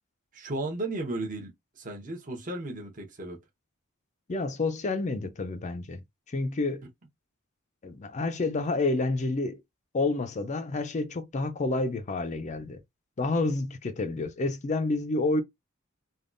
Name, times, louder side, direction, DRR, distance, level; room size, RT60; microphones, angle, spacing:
voice 1, 0.3-3.4, right 2 dB, 40° right, 0.8 m, -35 dB
voice 2, 4.3-6.0 6.3-6.8 7.8-9.6 9.9-12.8 13.2-15.4, left 2 dB, 35° left, 0.4 m, -29 dB
3.4 x 2.2 x 2.5 m
head